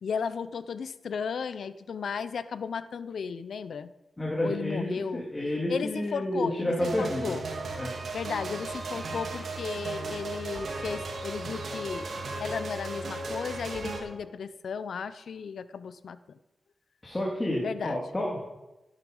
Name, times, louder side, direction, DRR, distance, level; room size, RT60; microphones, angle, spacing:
voice 1, 0.0-3.9 4.4-5.2 5.7-7.5 8.1-12.1 12.4-16.2 17.6-18.0, left 6 dB, 80° left, 14 dB, 0.7 m, -35 dB
voice 2, 4.2-7.4 7.7-7.9 17.0-18.4, left 1 dB, 20° left, -3 dB, 3.1 m, -30 dB
sound 1, 6.8-14.0, right 3 dB, 80° right, 3.3 m, -36 dB
15.0 x 11.0 x 5.5 m, 0.99 s
wide cardioid pair, 90°, 0 cm